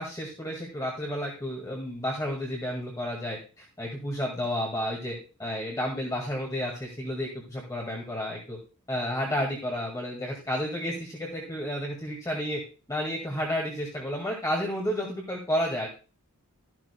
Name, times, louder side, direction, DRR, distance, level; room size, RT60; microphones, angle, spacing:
voice 1, 0.0-8.6 8.9-12.6 12.9-15.9, equal, 15° left, -1 dB, 2.0 m, -31 dB
13.0 x 11.5 x 2.3 m, 0.34 s
head